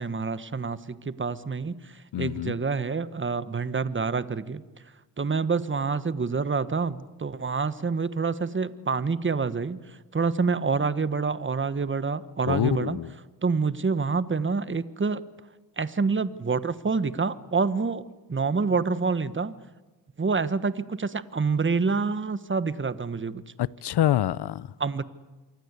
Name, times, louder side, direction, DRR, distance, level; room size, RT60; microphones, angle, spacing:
voice 1, 0.0-4.6 5.2-13.0 13.4-15.2 15.8-19.5 20.2-23.4 24.8-25.0, right 4 dB, 25° right, 1.4 m, -27 dB
voice 2, 2.1-2.6 12.4-13.1 23.6-24.7, left 12 dB, 65° left, 0.8 m, -26 dB
27.0 x 24.0 x 8.4 m
cardioid pair, 65°, 43 cm